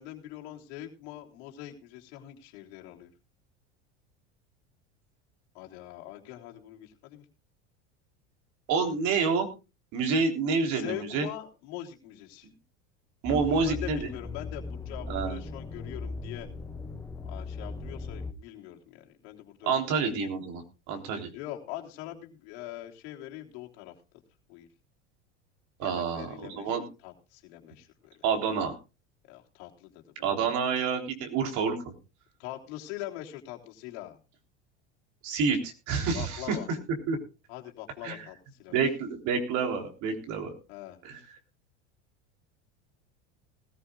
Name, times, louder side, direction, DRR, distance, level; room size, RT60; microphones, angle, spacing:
voice 1, 0.0-3.1 5.5-7.2 10.6-12.5 13.3-16.5 17.2-19.8 21.3-23.9 24.5-24.7 25.8-26.8 27.0-28.1 29.3-30.3 32.4-34.2 36.1-36.7 37.5-38.8 40.7-41.0, left 14 dB, 70° left, 1 dB, 3.4 m, -43 dB
voice 2, 8.7-9.5 9.9-11.3 13.2-14.1 15.1-15.4 19.6-21.3 25.8-26.8 28.2-28.7 30.2-31.9 35.2-36.6 37.1-37.2 38.0-38.2 38.7-40.6 41.0-41.2, right 5 dB, 60° right, 4 dB, 3.7 m, -28 dB
sound 1, 13.3-18.3, left 3 dB, 10° left, 1.1 m, -38 dB
19.5 x 14.5 x 2.4 m, 0.29 s
supercardioid pair, 105°, 34 cm